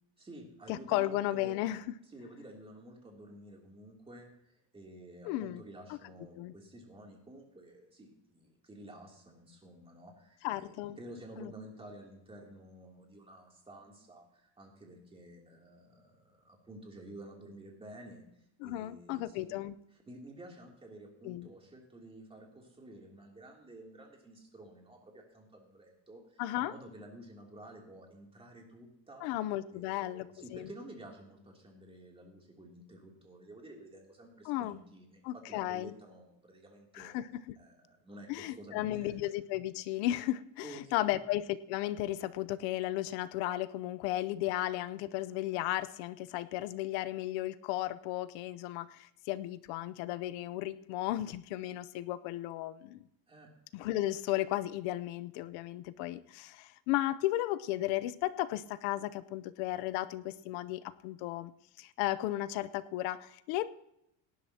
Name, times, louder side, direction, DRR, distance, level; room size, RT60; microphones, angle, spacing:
voice 1, 0.2-1.7 2.1-19.5 19.9-29.3 29.7-38.3 38.5-39.2 40.6-41.2 53.3-53.5, right 1 dB, 15° right, 0 dB, 3.0 m, -51 dB
voice 2, 0.7-1.8 5.2-5.6 5.9-6.0 6.4-6.5 10.4-11.0 11.4-11.5 18.6-19.7 21.2-21.5 26.4-26.7 29.2-30.3 30.5-30.7 34.4-34.8 35.2-35.9 36.9-37.3 38.3-53.0 53.7-61.5 61.8-63.7, left 15 dB, 85° left, 14 dB, 0.8 m, -34 dB
18.0 x 11.5 x 2.9 m, 0.80 s
cardioid pair, 150°, 40 cm